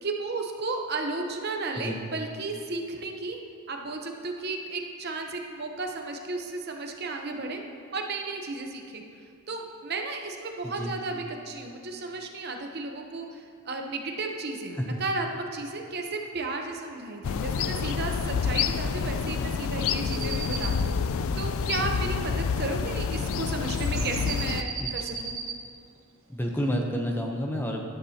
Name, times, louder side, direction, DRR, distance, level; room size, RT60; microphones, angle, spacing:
voice 1, 0.0-3.4 3.7-7.6 7.9-9.0 9.5-20.9 21.4-25.3, right 3 dB, 45° right, 3 dB, 0.8 m, -34 dB
sound 1, 17.2-24.6, left 6 dB, 70° left, 0.4 m, -28 dB
sound 2, 20.1-20.8 23.7-25.6, right 6 dB, 70° right, 1.0 m, -36 dB
voice 2, 21.8-22.2 23.9-24.1 24.8-25.0 26.3-27.8, equal, 10° left, 1 dB, 0.7 m, -30 dB
13.5 x 11.5 x 2.9 m, 2.4 s
head